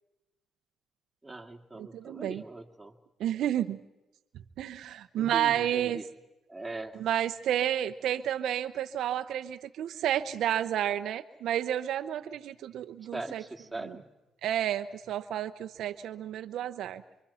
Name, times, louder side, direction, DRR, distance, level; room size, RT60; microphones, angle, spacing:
voice 1, 1.2-2.9 5.2-6.1 6.5-7.1 13.1-14.0, right 2 dB, 10° right, 2 dB, 2.4 m, -40 dB
voice 2, 1.8-2.4 3.2-3.8 4.6-6.0 7.0-13.4 14.4-17.0, right 11 dB, 75° right, 9 dB, 0.8 m, -31 dB
27.0 x 23.5 x 5.7 m, 0.99 s
cardioid pair, 90°, 0 cm